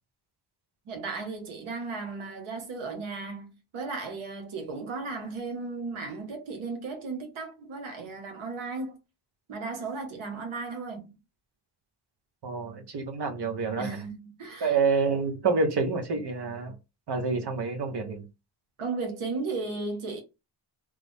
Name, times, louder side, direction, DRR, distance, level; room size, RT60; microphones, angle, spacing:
voice 1, 0.9-9.0 9.5-11.1 13.8-14.8 18.8-20.2, right 4 dB, 75° right, 1.2 m, -35 dB
voice 2, 12.4-14.0 14.6-16.7 17.1-18.3, right 4 dB, 55° right, 1.0 m, -28 dB
3.3 x 2.1 x 3.5 m
cardioid pair, 65°, 49 cm